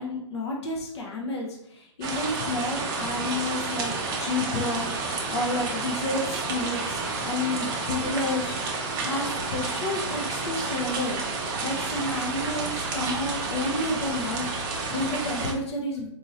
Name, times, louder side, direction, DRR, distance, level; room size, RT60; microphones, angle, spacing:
voice 1, 0.0-3.9 4.2-8.6 9.0-16.1, left 2 dB, 60° left, 0 dB, 0.9 m, -31 dB
sound 1, 2.0-15.5, right 3 dB, 25° right, 0.6 m, -30 dB
4.1 x 2.6 x 2.9 m, 0.75 s
hypercardioid pair, 140°, 16 cm